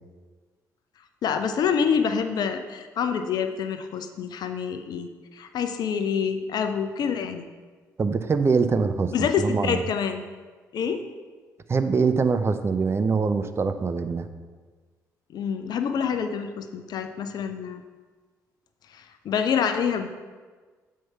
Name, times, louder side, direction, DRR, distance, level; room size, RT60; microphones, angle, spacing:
voice 1, 1.2-5.1 5.3-7.4 9.1-10.2 10.7-11.0 15.3-17.8 19.2-20.1, left 7 dB, 50° left, 8 dB, 0.6 m, -26 dB
voice 2, 8.0-9.8 11.7-14.3, right 5 dB, 30° right, 9 dB, 0.5 m, -23 dB
7.9 x 4.6 x 5.6 m, 1.4 s
figure-of-eight pair, 45°, 9 cm